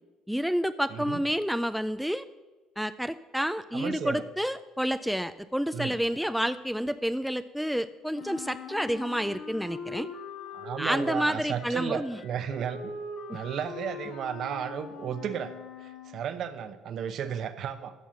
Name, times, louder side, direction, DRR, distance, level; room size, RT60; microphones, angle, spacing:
voice 1, 0.3-2.2 2.8-10.1 10.8-12.2 13.3-13.4, equal, ahead, 12 dB, 0.4 m, -29 dB
voice 2, 0.9-1.2 3.7-4.2 5.7-5.9 10.5-13.0 13.3-15.5 15.8-17.9, right 8 dB, 60° right, 11 dB, 0.8 m, -34 dB
Wind instrument woodwind instrument, 8.1-16.2, left 4 dB, 70° left, 2.0 m, -42 dB
13.0 x 5.5 x 6.4 m, 1.2 s
cardioid pair, 100°, 0 cm